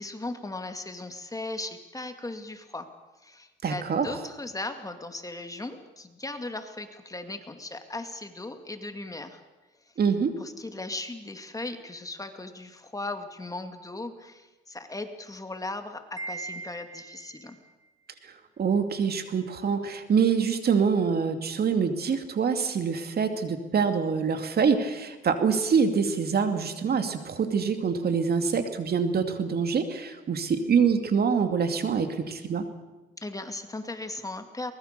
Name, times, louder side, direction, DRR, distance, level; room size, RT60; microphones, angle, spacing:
voice 1, 0.0-2.9 3.2-9.4 10.4-17.6 33.2-34.7, left 2 dB, 15° left, 7 dB, 2.3 m, -37 dB
voice 2, 3.6-4.1 10.0-10.3 18.2-32.6, right 6 dB, 50° right, 7 dB, 2.6 m, -25 dB
Wind chime, 16.2-17.6, right 3 dB, 20° right, 3.0 m, -39 dB
23.5 x 20.5 x 6.8 m, 1.1 s
cardioid pair, 90°, 20 cm